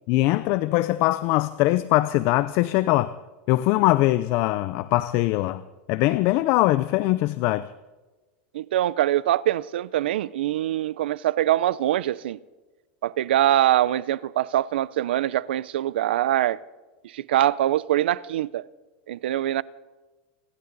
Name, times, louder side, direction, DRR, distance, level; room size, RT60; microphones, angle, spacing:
voice 1, 0.1-3.1 3.5-5.6 5.9-7.7, left 17 dB, 50° left, 0.5 m, -22 dB
voice 2, 8.5-12.4 13.0-16.6 17.0-18.6 19.1-19.6, right 13 dB, 90° right, 0.6 m, -23 dB
29.0 x 12.5 x 4.0 m
supercardioid pair, 145°, 5 cm